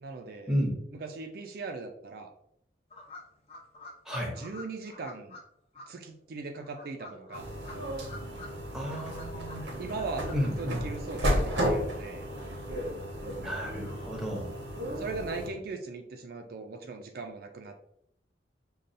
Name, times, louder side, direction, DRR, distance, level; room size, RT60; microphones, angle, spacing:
voice 1, 0.0-0.6 0.9-2.3 4.3-5.4 5.9-7.5 9.8-12.3 14.9-17.8, right 3 dB, 55° right, 5 dB, 0.4 m, -39 dB
sound 1, 2.9-5.4 5.7-5.9 6.6-8.5 8.7-10.4 10.7-11.6, left 3 dB, 35° left, 0.7 m, -47 dB
voice 2, 4.0-4.4 8.7-9.7 10.3-10.8 13.4-14.5, equal, 5° right, -1 dB, 0.8 m, -32 dB
sound 2, 7.3-15.5, equal, 90° right, 0.8 m, -33 dB
5.2 x 2.3 x 2.6 m, 0.74 s
head